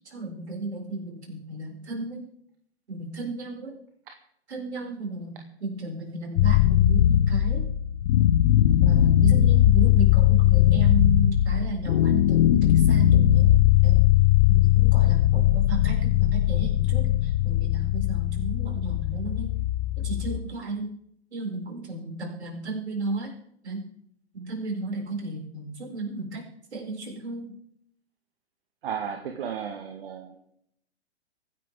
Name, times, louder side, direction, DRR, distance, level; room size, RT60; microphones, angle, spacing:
voice 1, 0.0-2.2 2.9-3.8 4.5-5.3 5.6-7.7 8.7-13.5 13.8-14.0 14.5-19.5 20.0-20.9 21.3-23.3 23.6-23.9 24.3-26.5 26.7-27.5, right 2 dB, 75° right, -2 dB, 7.0 m, -34 dB
sound 1, 6.4-20.4, left 12 dB, 45° left, 1.0 m, -20 dB
voice 2, 28.8-30.4, right 7 dB, 55° right, 4 dB, 2.0 m, -34 dB
25.0 x 9.8 x 3.9 m, 0.71 s
figure-of-eight pair, 120°, 34 cm